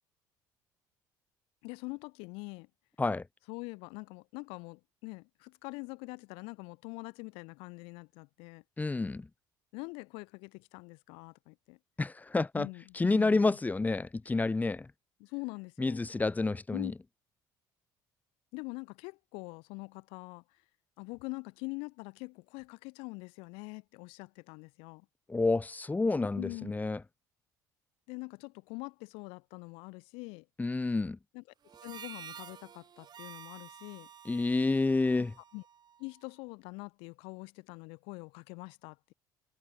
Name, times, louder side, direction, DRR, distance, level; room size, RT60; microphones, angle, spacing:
voice 1, 1.6-2.7 3.5-8.6 9.7-11.8 12.5-13.6 15.2-16.0 16.7-16.9 18.5-20.4 21.0-25.0 26.3-26.7 28.1-30.4 31.3-31.4 31.8-34.1 35.2-35.3 35.5-35.6 36.0-39.1, left 29 dB, 80° left, 6.8 m, -44 dB
voice 2, 8.8-9.3 12.0-12.7 12.9-14.9 15.8-16.9 25.3-27.0 30.6-31.2 34.2-35.3, left 3 dB, 15° left, 1.0 m, -29 dB
Harmonica, 31.6-36.3, right 8 dB, 50° right, 5.8 m, -51 dB
hypercardioid pair, 70°, 9 cm